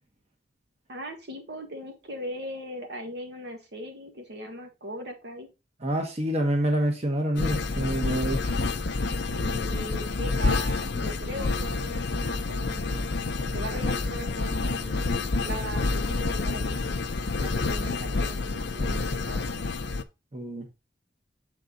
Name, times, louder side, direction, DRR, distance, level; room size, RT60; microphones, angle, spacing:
voice 1, 0.9-5.5 9.3-13.1 13.4-16.9 17.4-19.4, equal, 65° right, 1.7 m, -39 dB
voice 2, 5.8-8.5 20.3-20.6, right 1 dB, 35° right, 1.3 m, -27 dB
sound 1, 7.4-20.0, left 3 dB, 75° left, 0.6 m, -28 dB
7.1 x 4.5 x 3.9 m
head